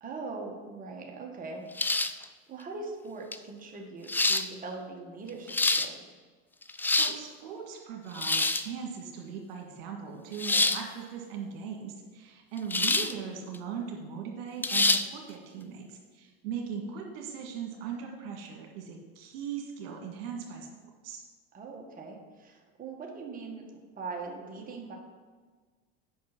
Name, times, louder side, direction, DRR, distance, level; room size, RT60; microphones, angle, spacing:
voice 1, 0.0-1.6 2.5-6.0 10.4-10.7 21.5-24.9, right 3 dB, 30° right, 0 dB, 1.7 m, -41 dB
sound 1, 1.8-2.2 3.3-3.4 4.1-4.5 5.3-5.9 6.6-7.2 8.1-8.7 10.4-10.8 12.7-13.1 13.5-13.6 14.6-15.0, left 2 dB, 5° left, 0.3 m, -26 dB
voice 2, 6.9-20.7 21.0-21.2, right 7 dB, 80° right, 1 dB, 1.9 m, -39 dB
8.6 x 5.7 x 6.0 m, 1.4 s
supercardioid pair, 105°, 30 cm